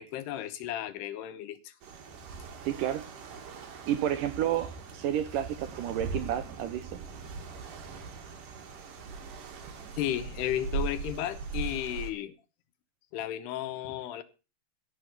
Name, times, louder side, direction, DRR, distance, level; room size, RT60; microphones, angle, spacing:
voice 1, 0.0-1.7 10.0-12.3 13.1-14.2, left 12 dB, 90° left, 3.2 m, -34 dB
sound 1, 1.8-12.1, right 5 dB, 60° right, 3.3 m, -40 dB
voice 2, 2.7-3.1 3.9-7.0, right 11 dB, 75° right, 2.0 m, -31 dB
16.5 x 7.0 x 6.6 m
omnidirectional pair, 4.5 m